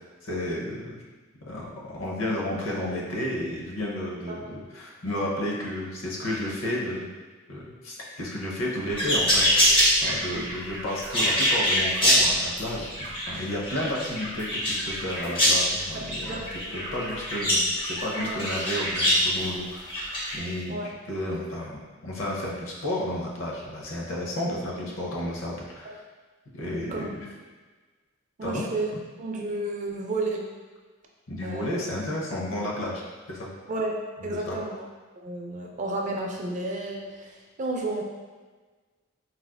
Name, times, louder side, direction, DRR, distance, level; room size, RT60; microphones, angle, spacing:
voice 1, 0.2-0.9 1.4-7.1 7.5-9.5 10.0-20.8 21.1-25.9 26.5-27.3 28.4-28.6 28.9-29.0 31.3-33.0 33.3-33.5 34.2-34.6, left 1 dB, 70° left, -3 dB, 0.7 m, -32 dB
sound 1, 8.9-19.3 19.9-20.4, equal, 25° left, 0.7 m, -24 dB
voice 2, 15.9-17.1 18.1-18.4 20.7-20.9 24.4-24.5 25.8-26.0 26.9-27.1 28.4-28.9 29.2-30.4 31.4-31.8 33.7-34.9 35.2-38.0, right 2 dB, 40° right, 0 dB, 0.4 m, -32 dB
4.1 x 2.3 x 2.2 m, 1.3 s
head